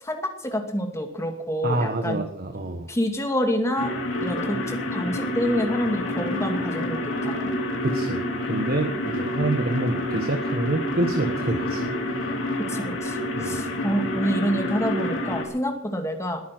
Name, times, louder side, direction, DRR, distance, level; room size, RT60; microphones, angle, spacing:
voice 1, 0.0-2.2 2.9-3.9 4.2-7.6 12.7-16.4, equal, 15° left, 4 dB, 2.4 m, -27 dB
voice 2, 1.6-2.9 7.8-11.9 13.4-13.6, right 2 dB, 50° right, 6 dB, 1.3 m, -27 dB
sound 1, 3.7-15.4, left 1 dB, 70° left, 3.6 m, -28 dB
20.0 x 9.6 x 6.1 m, 0.73 s
head